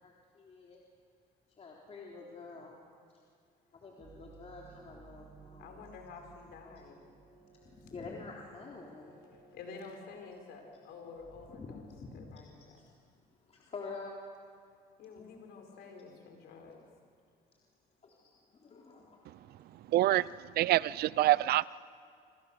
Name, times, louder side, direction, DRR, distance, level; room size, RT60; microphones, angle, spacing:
voice 1, 0.0-0.8 1.6-2.8 3.7-5.8 7.5-9.2 11.5-12.4 12.8-14.2 18.0-20.0 21.2-21.3, left 4 dB, 40° left, -2 dB, 3.7 m, -48 dB
sound 1, 4.0-12.6, right 5 dB, 35° right, 4.1 m, -59 dB
voice 2, 5.6-7.1 7.8-7.9 9.3-11.9 12.1-12.8 15.0-16.8, left 4 dB, 75° left, 3 dB, 5.7 m, -50 dB
voice 3, 19.9-21.7, right 15 dB, 65° right, 20 dB, 0.6 m, -27 dB
27.0 x 26.5 x 6.9 m, 2.3 s
cardioid pair, 110°, 17 cm